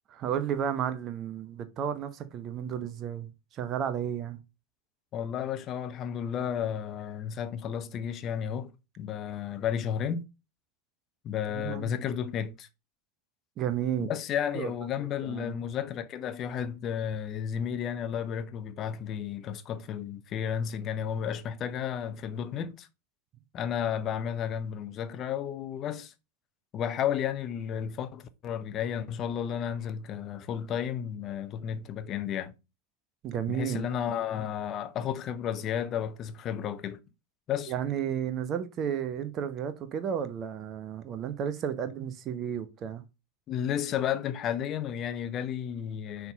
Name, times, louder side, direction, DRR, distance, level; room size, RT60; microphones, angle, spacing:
voice 1, 0.1-4.4 11.5-11.9 13.6-14.1 14.5-14.7 15.0-15.6 33.2-33.9 37.7-43.0, right 9 dB, 30° right, 0.9 m, -33 dB
voice 2, 5.1-10.2 11.2-12.7 14.0-22.9 23.5-26.1 26.7-32.5 33.5-37.0 37.5-37.7 43.5-46.3, left 9 dB, 30° left, 0.7 m, -32 dB
6.0 x 3.7 x 5.3 m
figure-of-eight pair, 90°, 0 cm